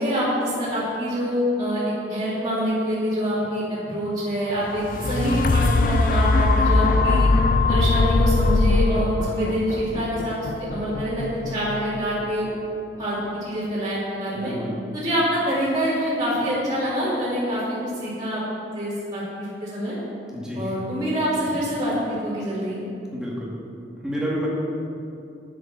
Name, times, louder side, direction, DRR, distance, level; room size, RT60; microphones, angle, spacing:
voice 1, 0.0-1.8 2.1-7.3 7.7-12.4 13.0-14.5 14.9-18.4 18.7-20.0 20.6-22.8, equal, 25° right, -12 dB, 3.1 m, -25 dB
sound 1, 4.6-12.7 13.3-13.4, left 3 dB, 50° left, 0.5 m, -21 dB
voice 2, 14.3-14.8 20.3-20.7 23.1-23.5 24.0-24.5, equal, 5° right, -6 dB, 2.2 m, -29 dB
9.8 x 8.6 x 6.0 m, 2.6 s
head